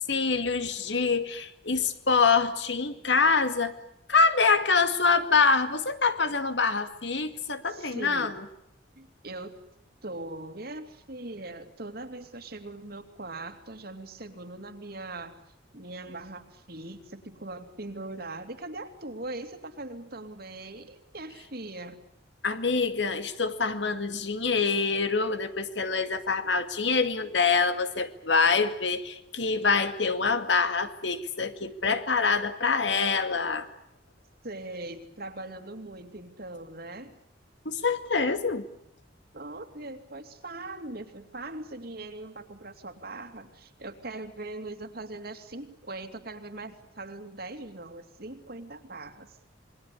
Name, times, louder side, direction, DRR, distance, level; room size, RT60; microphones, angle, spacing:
voice 1, 0.1-3.7 4.1-8.3 22.4-33.7 37.7-38.6, left 4 dB, 70° left, 9 dB, 2.2 m, -25 dB
voice 2, 7.7-8.4 9.0-9.5 10.0-15.4 15.7-22.0 34.4-37.2 39.3-49.3, right 2 dB, 55° right, 7 dB, 2.7 m, -40 dB
27.5 x 22.0 x 8.5 m, 0.78 s
head